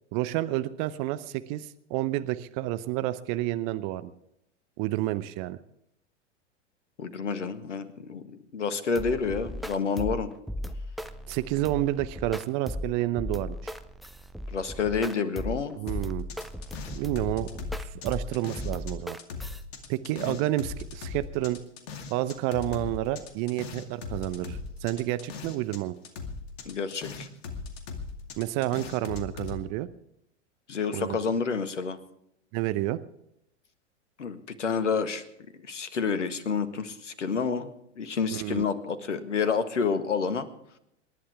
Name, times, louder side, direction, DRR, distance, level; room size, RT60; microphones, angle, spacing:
voice 1, 0.1-4.1 4.8-5.6 11.3-13.7 15.8-16.2 16.9-17.5 17.8-19.2 19.9-21.6 22.1-25.9 28.4-29.9 30.9-31.2 32.5-33.0 38.3-38.6, right 15 dB, 40° right, 14 dB, 0.8 m, -30 dB
voice 2, 7.0-10.3 14.5-15.7 20.3-20.4 26.6-27.3 30.7-32.0 34.2-35.2 35.7-37.7 38.0-40.5, left 5 dB, 75° left, 11 dB, 1.7 m, -29 dB
sound 1, 9.0-19.6, left 1 dB, ahead, 0.5 m, -37 dB
sound 2, 15.9-18.9 19.2-25.8 26.0-29.6, left 4 dB, 55° left, 2.3 m, -39 dB
27.5 x 11.5 x 3.5 m, 0.78 s
figure-of-eight pair, 95°, 36 cm